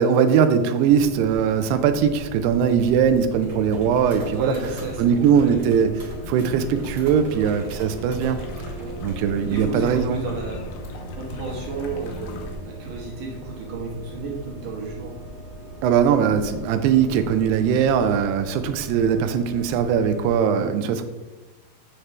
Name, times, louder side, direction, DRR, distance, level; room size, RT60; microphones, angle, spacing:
voice 1, 0.0-4.5 5.0-5.9 6.3-8.5 9.0-10.3 15.8-21.0, right 7 dB, 80° right, 9 dB, 2.5 m, -20 dB
sound 1, 0.9-20.4, right 1 dB, 45° right, 1.3 m, -38 dB
voice 2, 4.3-5.8 7.3-7.8 8.8-9.0 9.5-10.6 11.1-15.1, right 3 dB, 65° right, -2 dB, 2.3 m, -33 dB
sound 2, 5.9-12.6, left 1 dB, 75° left, 2.6 m, -38 dB
8.0 x 7.2 x 3.3 m, 1.2 s
omnidirectional pair, 5.0 m